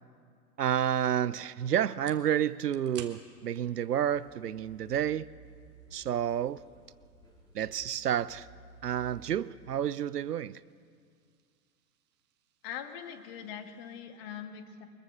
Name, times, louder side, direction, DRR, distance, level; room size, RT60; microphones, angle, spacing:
voice 1, 0.6-5.3 5.9-6.6 7.5-8.5 8.8-10.6, right 10 dB, 70° right, 20 dB, 0.7 m, -30 dB
sound 1, 1.9-14.0, right 9 dB, 20° right, 1.4 m, -58 dB
sound 2, 4.1-9.3, right 2 dB, 10° left, 4.7 m, -56 dB
voice 2, 12.6-14.9, left 8 dB, 35° left, 7 dB, 2.1 m, -42 dB
23.0 x 21.5 x 6.6 m, 2.1 s
figure-of-eight pair, 115°, 48 cm